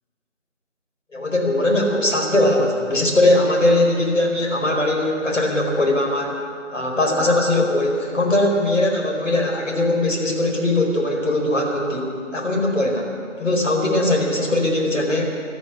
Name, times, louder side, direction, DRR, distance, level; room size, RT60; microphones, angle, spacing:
voice 1, 1.1-6.4 6.7-13.1 13.4-15.2, left 1 dB, 70° left, 0 dB, 4.4 m, -20 dB
12.5 x 12.5 x 8.1 m, 2.4 s
figure-of-eight pair, 175°, 39 cm